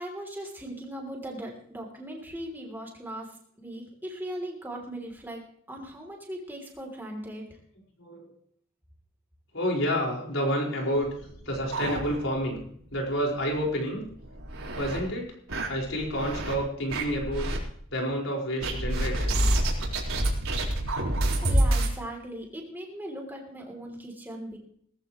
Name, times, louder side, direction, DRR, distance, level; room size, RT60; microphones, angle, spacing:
voice 1, 0.0-7.6 21.4-24.6, right 1 dB, 10° right, 0 dB, 3.2 m, -39 dB
voice 2, 8.0-8.3 9.5-11.1 11.4-12.6 12.9-14.1 14.8-15.3 15.7-17.5 17.9-19.4, equal, 65° left, -1 dB, 5.1 m, -29 dB
sound 1, 11.0-12.6 12.9-13.0 13.4-13.5 14.1-15.0 15.5-16.6 16.9-17.6 18.6-21.9, right 1 dB, 85° right, 4.3 m, -27 dB
19.0 x 14.5 x 3.2 m, 0.62 s
head